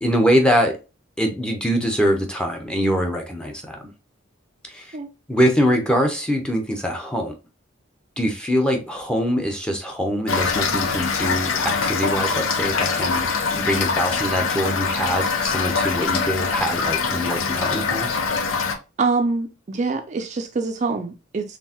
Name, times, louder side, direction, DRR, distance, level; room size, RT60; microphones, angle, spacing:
voice 1, 0.0-0.7 1.2-3.8 4.7-5.0 5.3-7.3 8.2-18.2, equal, 5° left, 0.7 m, -23 dB
Toilet flush / Fill (with liquid), 10.3-18.8, left 5 dB, 85° left, 0.6 m, -23 dB
voice 2, 19.0-21.6, right 4 dB, 35° right, 0.4 m, -25 dB
4.5 x 3.3 x 2.8 m
head